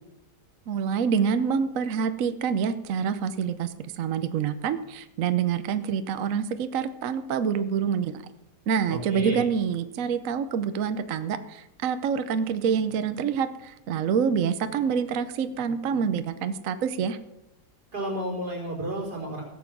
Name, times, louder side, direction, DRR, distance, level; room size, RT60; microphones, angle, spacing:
voice 1, 0.7-8.2 8.7-17.2, right 7 dB, 60° right, 11 dB, 1.0 m, -27 dB
voice 2, 8.9-9.4 17.9-19.4, right 1 dB, 80° right, -2 dB, 4.5 m, -31 dB
17.0 x 7.4 x 6.0 m, 0.90 s
omnidirectional pair, 1.8 m